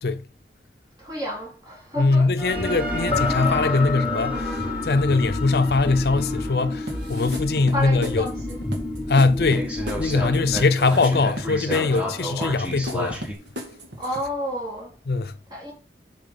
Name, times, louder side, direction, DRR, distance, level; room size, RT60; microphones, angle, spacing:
voice 1, 1.0-2.3 7.7-8.6 11.9-12.2 14.0-15.0 15.5-15.7, equal, 25° right, 3.8 m, -31 dB
voice 2, 2.0-8.3 9.1-9.7 10.0-13.2 15.1-15.3, left 3 dB, 65° left, 0.6 m, -21 dB
sound 1, 2.4-7.8 8.3-8.4 8.9-9.0 9.5-13.3, equal, 10° right, 1.9 m, -32 dB
Sonaresque background theme, 2.5-10.6, left 3 dB, 30° left, 1.4 m, -29 dB
sound 2, 6.9-14.2, equal, 85° right, 1.9 m, -37 dB
8.4 x 6.2 x 3.9 m
head